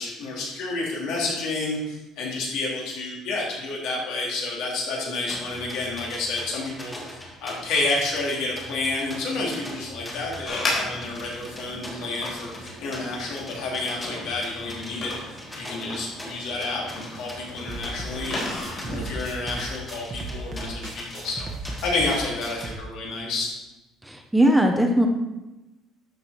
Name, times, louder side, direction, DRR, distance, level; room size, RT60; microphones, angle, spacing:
voice 1, 0.0-15.1 15.5-18.5 18.9-21.5 21.8-23.5, left 2 dB, 70° left, -3 dB, 3.3 m, -30 dB
sound 1, 5.3-22.7, left 1 dB, 15° left, 1.8 m, -41 dB
sound 2, 10.4-19.0, left 2 dB, 40° left, 3.8 m, -35 dB
sound 3, 17.7-22.7, right 2 dB, 20° right, 1.0 m, -36 dB
voice 2, 24.0-25.1, right 1 dB, 5° right, 3 dB, 0.7 m, -19 dB
12.0 x 6.3 x 4.4 m, 1.0 s
cardioid pair, 160°, 0 cm